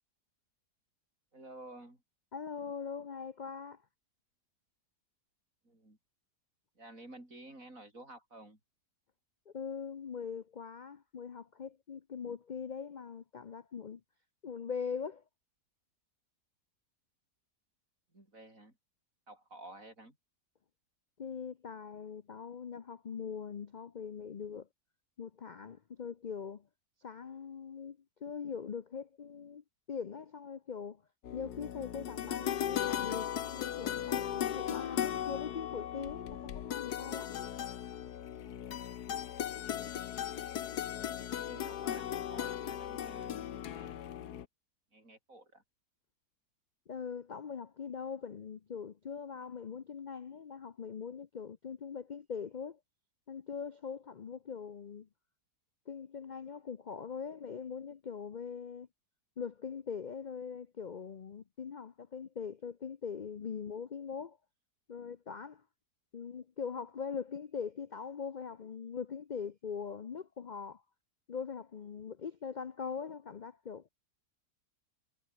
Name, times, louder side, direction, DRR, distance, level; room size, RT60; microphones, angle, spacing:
voice 1, 1.3-2.0 5.6-6.0 6.7-8.6 18.1-18.8 19.3-20.2 39.7-39.9 41.3-44.0 44.9-45.6, right 1 dB, 50° right, 8.2 m, -52 dB
voice 2, 2.3-3.8 9.5-14.0 14.4-15.2 21.2-24.7 25.2-26.7 27.0-31.0 31.3-37.5 46.9-52.8 53.3-55.1 55.9-58.9 59.4-64.4 64.9-65.6 66.1-70.8 71.3-73.9, left 6 dB, 55° left, 0.5 m, -42 dB
sound 1, 31.2-44.5, left 10 dB, 70° left, 1.5 m, -37 dB
omnidirectional pair, 1.8 m